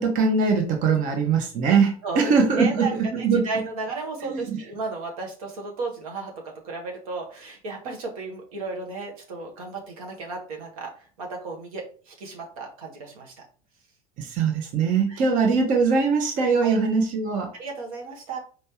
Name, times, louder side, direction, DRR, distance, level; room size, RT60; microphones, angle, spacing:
voice 1, 0.0-3.5 4.2-4.6 14.2-17.5, right 5 dB, 45° right, 3 dB, 1.0 m, -22 dB
voice 2, 2.0-13.4 15.1-15.2 16.6-16.8 17.6-18.4, right 3 dB, 70° right, 1 dB, 1.3 m, -34 dB
4.5 x 3.3 x 2.9 m, 0.40 s
hypercardioid pair, 75°, 19 cm